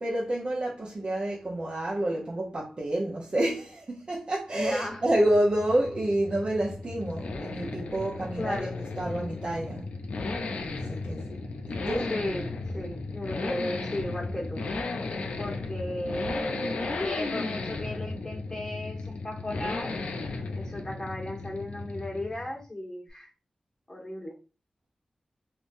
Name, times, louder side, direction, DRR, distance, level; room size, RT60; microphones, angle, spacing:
voice 1, 0.0-8.7 9.0-9.8 10.9-11.2 11.7-12.1, right 1 dB, 50° right, 0.7 m, -28 dB
voice 2, 4.5-5.0 8.4-8.8 12.0-14.6 15.4-20.0 20.5-23.3 23.9-24.3, left 1 dB, 25° left, 1.4 m, -35 dB
sound 1, 4.6-22.6, left 3 dB, 85° left, 0.5 m, -35 dB
3.5 x 2.6 x 2.6 m
wide cardioid pair, 65°, 2 cm